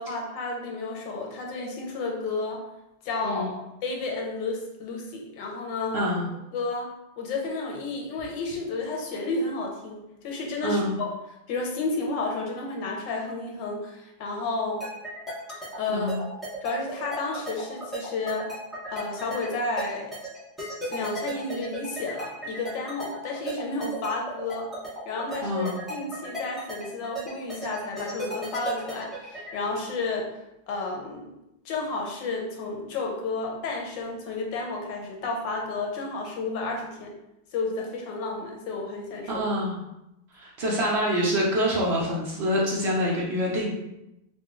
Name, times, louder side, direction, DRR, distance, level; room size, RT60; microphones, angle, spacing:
voice 1, 0.0-2.6 3.0-6.0 6.5-6.9 7.2-11.1 11.5-14.9 15.8-16.1 16.6-18.5 18.9-20.1 20.9-24.7 25.0-30.3 30.7-31.3 31.6-37.1 37.5-39.5 40.7-40.8, left 3 dB, 80° left, 0 dB, 1.4 m, -31 dB
voice 2, 3.2-3.6 5.9-6.3 10.6-10.9 15.9-16.2 25.4-25.8 39.3-39.8 40.3-43.7, equal, 75° right, -4 dB, 0.6 m, -26 dB
sound 1, 14.8-29.5, right 1 dB, ahead, 0.7 m, -35 dB
3.8 x 2.3 x 3.6 m, 0.88 s
omnidirectional pair, 2.0 m